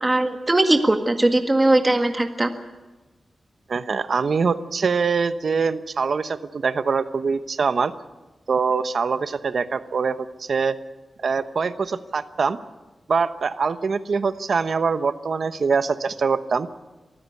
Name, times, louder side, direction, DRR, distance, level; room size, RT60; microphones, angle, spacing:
voice 1, 0.0-2.5, right 2 dB, 25° right, 5 dB, 1.7 m, -19 dB
voice 2, 3.7-7.9 8.5-10.8 11.2-12.6 13.1-16.7, right 5 dB, 65° right, 11 dB, 1.0 m, -23 dB
23.5 x 15.5 x 8.4 m, 1.2 s
wide cardioid pair, 85°, 0 cm